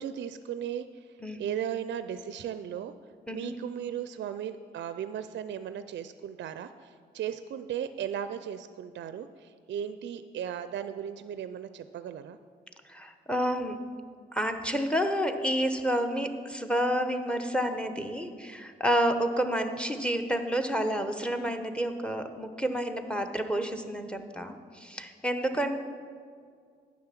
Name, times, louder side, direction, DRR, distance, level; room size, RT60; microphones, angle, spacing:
voice 1, 0.0-2.9 3.3-12.4 25.0-25.1 25.5-25.6, right 9 dB, 65° right, 12 dB, 0.4 m, -36 dB
voice 2, 12.9-13.8 14.3-25.8, equal, 5° left, 7 dB, 0.9 m, -29 dB
9.5 x 6.1 x 5.8 m, 2.1 s
supercardioid pair, 50°, 20 cm